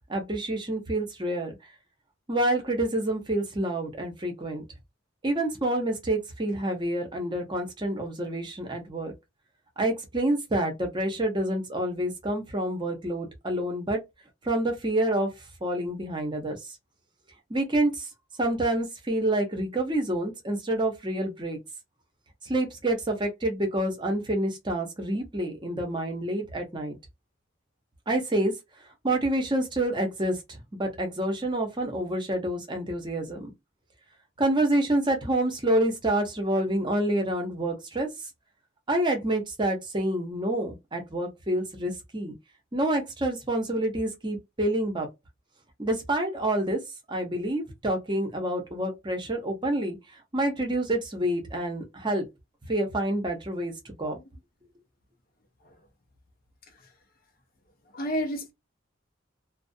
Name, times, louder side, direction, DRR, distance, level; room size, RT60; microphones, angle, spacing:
voice 1, 0.1-1.5 2.3-4.6 5.2-9.1 9.8-14.0 14.4-15.3 15.6-16.8 17.5-18.1 18.4-21.6 22.4-27.0 28.1-28.5 29.0-33.5 34.4-38.1 38.9-42.3 42.7-45.1 45.8-46.8 47.1-50.0 50.3-52.3 52.7-54.2, right 1 dB, 25° right, 0.7 m, -28 dB
voice 2, 57.9-58.5, equal, 45° left, 0.5 m, -32 dB
2.4 x 2.0 x 2.5 m
head